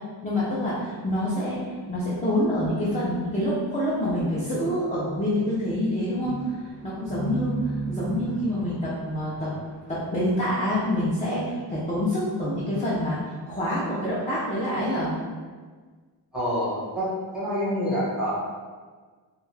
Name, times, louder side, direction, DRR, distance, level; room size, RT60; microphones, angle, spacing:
voice 1, 0.2-6.6 6.8-9.6 9.9-15.1, left 1 dB, 15° left, -9 dB, 0.4 m, -26 dB
sound 1, 6.2-11.1, right 4 dB, 45° right, 0.5 m, -36 dB
voice 2, 16.3-18.3, equal, ahead, -9 dB, 0.9 m, -27 dB
2.7 x 2.3 x 3.2 m, 1.5 s
wide cardioid pair, 165°, 43 cm